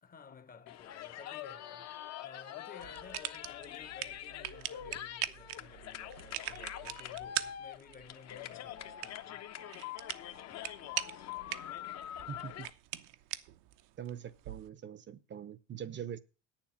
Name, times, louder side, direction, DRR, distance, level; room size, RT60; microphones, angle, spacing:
voice 1, 0.0-9.5 10.8-10.9, left 6 dB, 25° left, 1.0 m, -55 dB
sound 1, 0.7-12.7, left 11 dB, 45° left, 1.0 m, -45 dB
sound 2, 2.8-14.7, right 15 dB, 70° right, 0.9 m, -43 dB
voice 2, 12.3-12.7 14.0-16.2, right 9 dB, 30° right, 0.8 m, -43 dB
9.1 x 7.3 x 7.4 m
supercardioid pair, 105°, 35 cm